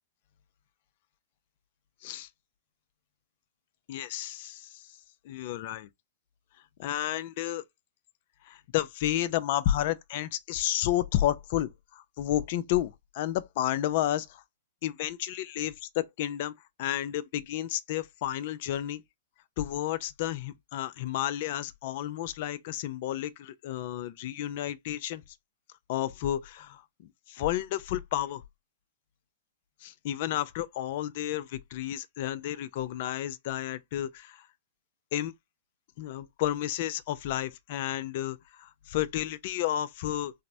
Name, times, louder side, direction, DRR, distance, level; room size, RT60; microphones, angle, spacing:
voice 1, 3.9-4.9 5.2-5.9 6.8-7.6 8.4-14.4 14.8-16.5 16.8-19.0 19.6-25.2 25.9-28.4 29.8-34.5 35.1-35.3 36.0-40.3, left 12 dB, 55° left, 0.4 m, -31 dB
3.2 x 2.0 x 2.7 m
hypercardioid pair, 125°, 0 cm